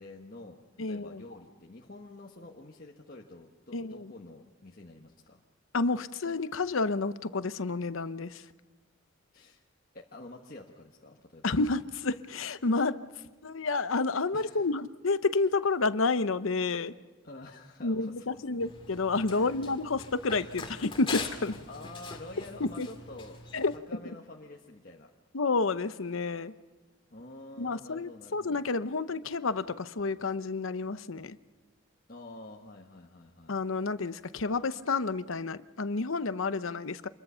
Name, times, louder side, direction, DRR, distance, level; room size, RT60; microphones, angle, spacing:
voice 1, 0.0-5.4 9.3-9.6 9.9-11.5 14.3-14.6 17.2-18.7 19.3-19.7 21.7-23.4 23.7-25.1 27.1-28.6 32.1-33.5, left 2 dB, 45° left, -1 dB, 1.4 m, -48 dB
voice 2, 0.8-1.2 3.7-4.1 5.7-8.4 11.4-13.0 13.4-16.9 17.8-21.5 22.6-22.9 23.5-24.0 25.3-26.5 27.6-31.4 33.5-37.1, left 3 dB, 85° left, 13 dB, 0.8 m, -30 dB
Run, 18.6-23.8, left 4 dB, 25° left, 2.5 m, -42 dB
27.0 x 22.0 x 5.7 m, 1.3 s
head